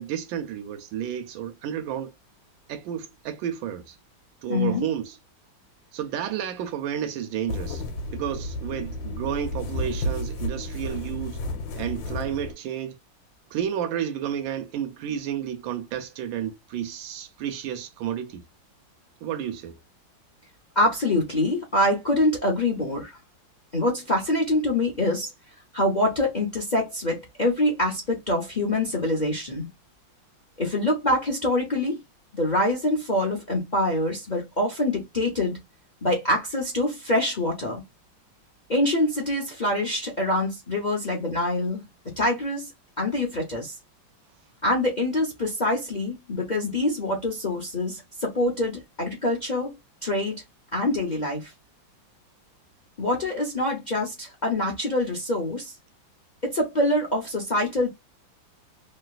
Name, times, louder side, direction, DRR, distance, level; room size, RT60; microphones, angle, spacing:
voice 1, 0.0-2.1 2.7-4.0 4.4-5.2 5.9-7.8 8.1-11.4 11.8-13.0 13.5-18.4 19.2-19.8, right 9 dB, 85° right, 1.4 m, -31 dB
voice 2, 4.5-4.9 20.7-23.2 23.7-25.3 25.7-29.7 30.6-32.0 32.3-35.6 36.0-37.8 38.7-41.8 42.2-42.7 43.0-43.8 44.6-49.7 50.0-50.4 50.7-51.5 53.0-55.7 56.4-57.9, left 1 dB, 55° left, 0.5 m, -25 dB
sound 1, 7.5-12.5, left 1 dB, 80° left, 1.5 m, -32 dB
3.1 x 2.8 x 2.4 m
omnidirectional pair, 2.1 m